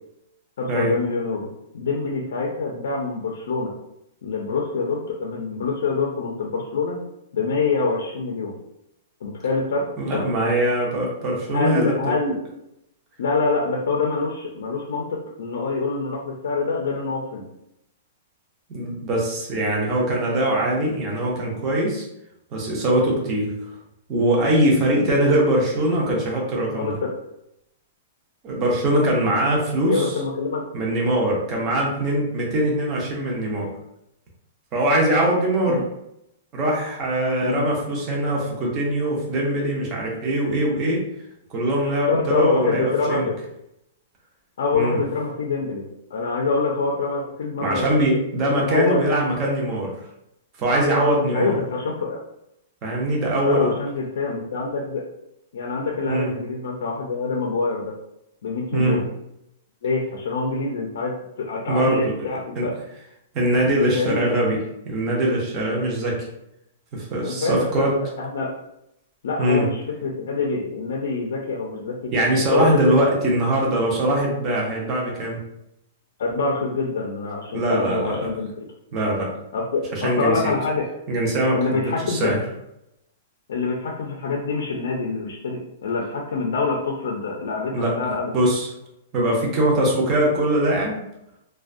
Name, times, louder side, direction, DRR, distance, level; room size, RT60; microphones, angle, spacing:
voice 1, 0.6-1.5 1.7-3.7 4.2-7.0 7.3-8.5 9.2-9.9 10.1-10.2 11.5-12.4 13.2-17.4 26.7-27.1 29.9-30.6 35.6-35.8 37.4-37.6 42.0-43.3 44.6-45.8 46.1-48.0 48.6-49.0 51.3-52.2 53.4-55.0 55.5-58.0 58.4-59.1 59.8-62.7 63.9-64.3 67.2-67.9 68.2-68.5 69.2-72.1 72.5-72.9 76.2-78.7 79.5-80.9 81.5-82.3 83.5-88.3, left 4 dB, 65° left, 0 dB, 0.4 m, -25 dB
voice 2, 10.0-12.1 18.7-22.1 22.5-23.7 24.1-27.0 28.4-30.2 30.7-33.7 34.7-35.9 36.5-41.1 41.5-43.3 44.7-45.0 47.6-49.9 50.6-51.6 52.8-53.8 56.1-56.3 58.7-59.0 61.7-62.1 62.6-62.7 63.3-64.6 64.8-66.3 66.9-67.9 69.4-69.7 72.1-75.4 77.5-78.3 78.9-79.3 79.9-80.5 81.1-82.4 87.7-88.0 88.3-88.7 89.1-91.0, right 1 dB, 20° right, -2 dB, 0.5 m, -22 dB
2.4 x 2.1 x 2.5 m, 0.82 s
hypercardioid pair, 180°, 0 cm